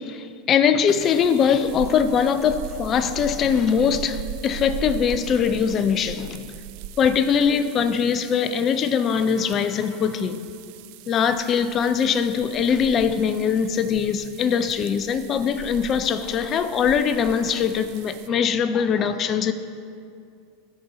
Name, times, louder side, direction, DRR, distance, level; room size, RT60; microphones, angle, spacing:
voice 1, 0.0-6.4 7.0-10.4 11.1-19.5, left 7 dB, 35° left, 11 dB, 0.5 m, -22 dB
sound 1, 0.9-18.3, right 9 dB, 50° right, 0.4 m, -40 dB
13.0 x 5.1 x 4.1 m, 2.4 s
figure-of-eight pair, 80°, 0 cm